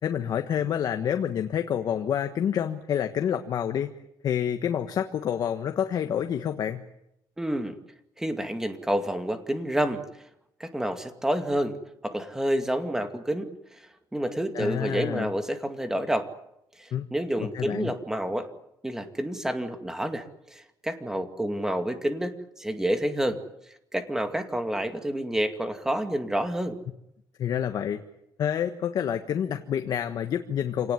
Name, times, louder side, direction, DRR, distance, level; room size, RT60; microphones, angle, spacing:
voice 1, 0.0-3.9 4.2-6.8 14.5-15.3 16.9-17.1 17.4-17.9 27.4-28.0 28.4-30.9, left 9 dB, 55° left, 7 dB, 1.4 m, -28 dB
voice 2, 7.4-7.8 8.2-10.0 10.6-11.8 12.0-16.3 16.8-18.5 18.8-23.4 23.9-26.8, right 1 dB, 5° right, 8 dB, 2.3 m, -29 dB
27.0 x 18.5 x 9.7 m, 0.82 s
cardioid pair, 145°, 8 cm